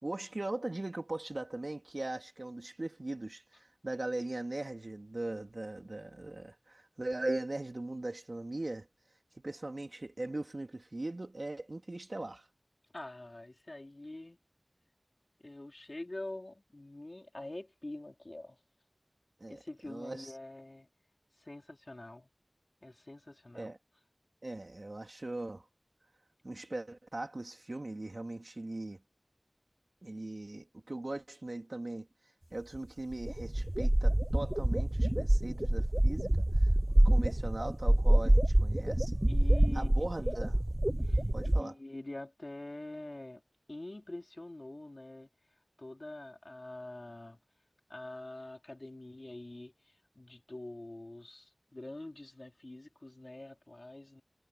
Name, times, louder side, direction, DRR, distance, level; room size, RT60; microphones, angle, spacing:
voice 1, 0.0-8.9 9.3-12.5 19.4-20.3 23.5-23.8 24.4-25.6 26.4-29.0 30.0-32.1 32.5-36.5 37.0-39.2 39.7-40.6 41.3-41.7, right 2 dB, 75° right, 2.9 m, -39 dB
voice 2, 12.9-14.4 15.4-18.6 19.5-20.9 21.4-22.3 22.8-23.7 39.3-39.9 41.0-43.4 43.7-45.3 45.8-47.4 47.9-54.2, left 2 dB, 60° left, 3.8 m, -45 dB
sound 1, 32.8-32.9 33.1-41.6, right 1 dB, 30° right, 0.8 m, -26 dB
wide cardioid pair, 40°, 0 cm